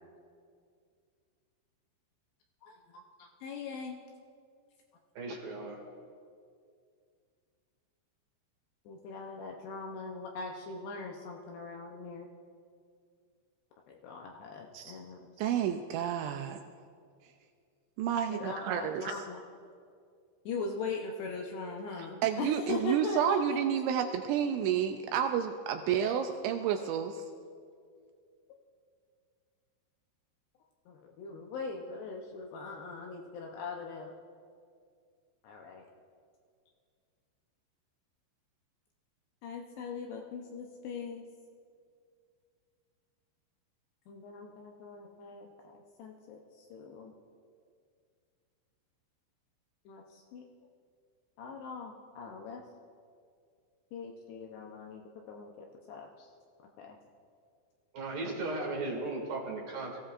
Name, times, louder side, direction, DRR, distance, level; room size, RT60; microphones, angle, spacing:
voice 1, 2.6-4.0 8.9-12.3 13.9-15.5 18.3-19.4 20.5-23.6 25.9-26.2 30.9-34.1 35.4-35.9 39.4-41.2 44.1-47.1 49.9-50.5 51.4-52.6 53.9-56.3 56.8-57.0, left 4 dB, 75° left, 1 dB, 2.6 m, -41 dB
voice 2, 5.2-5.8 57.9-60.0, right 2 dB, 55° right, -2 dB, 3.4 m, -36 dB
voice 3, 15.4-16.6 18.0-19.2 22.2-27.2, right 9 dB, 85° right, 6 dB, 2.7 m, -30 dB
23.5 x 15.5 x 2.5 m, 2.2 s
omnidirectional pair, 5.5 m